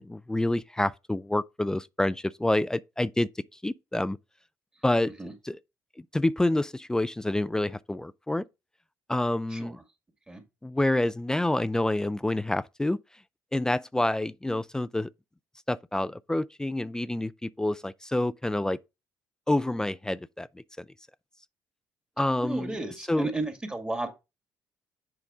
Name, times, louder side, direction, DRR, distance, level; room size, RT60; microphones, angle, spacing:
voice 1, 0.0-3.3 3.6-4.2 4.8-5.1 5.5-5.6 6.1-8.4 9.1-9.8 10.6-13.0 13.5-15.1 15.7-18.8 19.5-20.5 22.2-22.8 23.1-23.3, left 1 dB, 10° left, 0.3 m, -27 dB
voice 2, 22.4-24.1, right 2 dB, 15° right, 2.1 m, -33 dB
7.3 x 5.1 x 3.6 m
cardioid pair, 85°, 7 cm